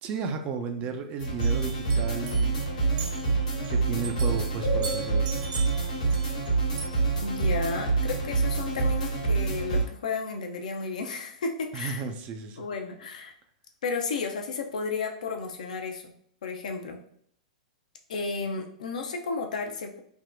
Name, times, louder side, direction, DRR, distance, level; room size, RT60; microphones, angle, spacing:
voice 1, 0.0-2.6 3.7-5.3 11.7-12.7, right 5 dB, 35° right, 7 dB, 0.4 m, -34 dB
sound 1, 1.2-9.8, right 4 dB, 90° left, 1.1 m, -26 dB
sound 2, 1.4-6.5 6.8-6.9, right 6 dB, 55° right, 0.9 m, -41 dB
voice 2, 7.2-12.0 12.6-13.3 13.8-16.1 16.4-17.0 18.1-20.0, left 4 dB, 75° left, 3 dB, 0.5 m, -33 dB
3.4 x 2.1 x 2.5 m, 0.66 s
hypercardioid pair, 110°, 4 cm